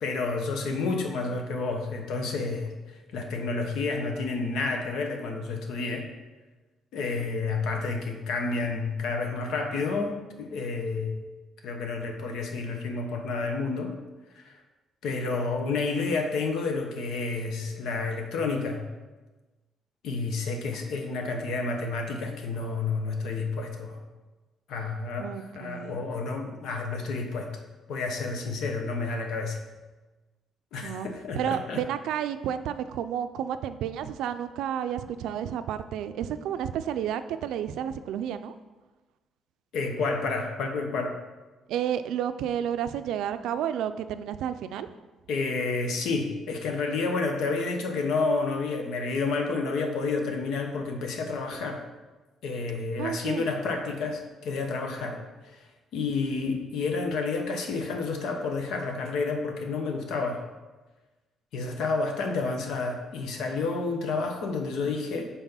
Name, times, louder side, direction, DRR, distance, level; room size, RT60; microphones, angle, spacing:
voice 1, 0.0-2.7 3.1-6.0 6.9-11.2 11.6-13.9 14.3-14.6 15.0-18.9 20.0-24.0 24.7-27.6 27.9-29.6 30.7-31.8 39.7-41.1 45.3-51.8 52.4-55.7 55.9-60.4 61.5-65.3, left 3 dB, 70° left, 4 dB, 0.9 m, -30 dB
voice 2, 25.2-26.0 30.8-31.1 31.4-38.5 41.7-44.9 53.0-53.5, right 9 dB, 85° right, 11 dB, 0.4 m, -31 dB
5.8 x 4.1 x 5.6 m, 1.2 s
cardioid pair, 170°, 0 cm